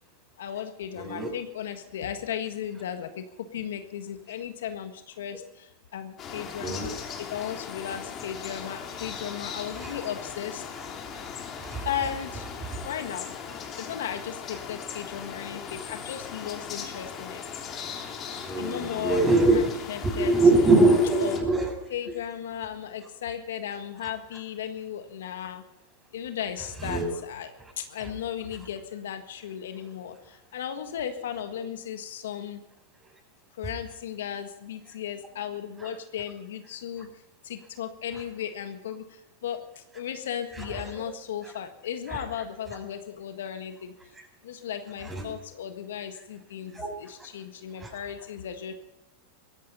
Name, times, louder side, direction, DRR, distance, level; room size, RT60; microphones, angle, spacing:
voice 1, 0.4-3.3 3.5-6.9 7.2-10.6 11.8-12.5 12.8-13.3 13.8-17.6 18.5-19.3 19.5-20.8 21.2-21.5 21.9-25.6 26.1-32.6 33.5-43.9 44.4-48.7, left 9 dB, 75° left, 7 dB, 1.6 m, -36 dB
voice 2, 1.0-1.3 6.6-6.9 9.0-9.1 9.8-9.9 10.8-10.9 11.1-11.8 12.7-12.8 17.7-17.8 18.4-19.7 20.1-21.7 26.8-27.1 35.8-35.9 40.6-40.8 42.1-42.2 45.0-45.3 46.7-46.9 47.8-47.9, right 2 dB, 15° right, 1 dB, 7.6 m, -23 dB
sound 1, 6.2-21.4, left 7 dB, 35° left, 3.3 m, -39 dB
17.0 x 14.5 x 5.6 m, 0.88 s
hypercardioid pair, 105°, 0 cm